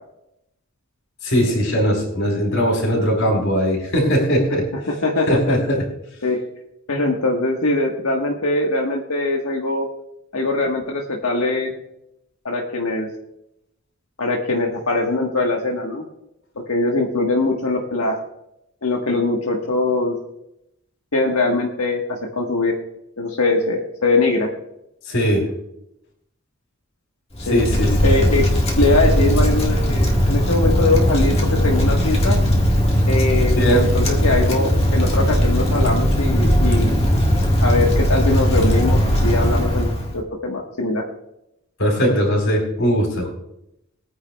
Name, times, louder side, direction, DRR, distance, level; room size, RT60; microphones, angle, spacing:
voice 1, 1.2-4.7 5.3-5.8 25.1-25.5 27.5-27.9 33.6-33.9 41.8-43.3, equal, 60° left, 1 dB, 4.3 m, -19 dB
voice 2, 4.9-5.6 6.2-6.4 6.9-9.9 10.3-11.7 12.4-13.1 14.2-16.0 16.7-18.2 18.8-20.2 21.1-22.7 23.2-24.5 27.5-27.6 28.0-28.4 28.8-32.3 33.1-37.0 37.6-39.9 40.1-41.0, left 2 dB, 75° left, 0 dB, 1.4 m, -21 dB
Wind, 27.3-40.2, equal, 25° left, 1.6 m, -18 dB
22.5 x 9.6 x 2.3 m, 0.83 s
head